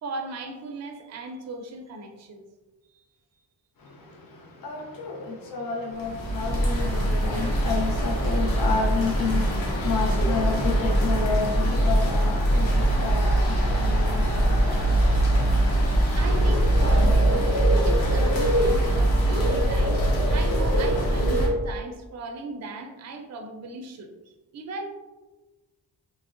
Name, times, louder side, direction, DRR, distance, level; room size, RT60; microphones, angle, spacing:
voice 1, 0.0-2.5 2.9-3.0 16.0-17.5 17.8-20.0 20.3-24.1 24.5-24.9, right 2 dB, 40° right, 4 dB, 0.4 m, -37 dB
voice 2, 4.6-15.0, left 4 dB, 50° left, -1 dB, 0.6 m, -30 dB
sound 1, 6.0-21.5, right 1 dB, 85° left, 0.8 m, -22 dB
sound 2, 9.1-20.4, left 1 dB, 20° left, 1.1 m, -42 dB
3.4 x 2.0 x 2.5 m, 1.1 s
cardioid pair, 60°, 45 cm